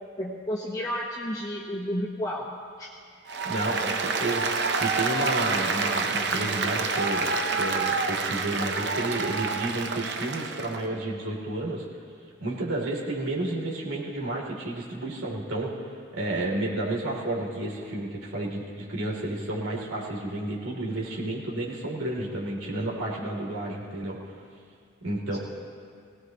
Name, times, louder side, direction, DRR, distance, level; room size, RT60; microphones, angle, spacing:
voice 1, 0.2-2.5 2.8-2.9 25.3-25.4, equal, 20° left, -5 dB, 1.2 m, -31 dB
Applause, 3.3-10.8, right 4 dB, 55° right, 0.8 m, -28 dB
voice 2, 3.4-7.3 7.5-11.8 12.4-24.2 25.0-25.4, right 1 dB, 85° right, -4 dB, 3.3 m, -31 dB
22.0 x 17.5 x 3.1 m, 2.3 s
head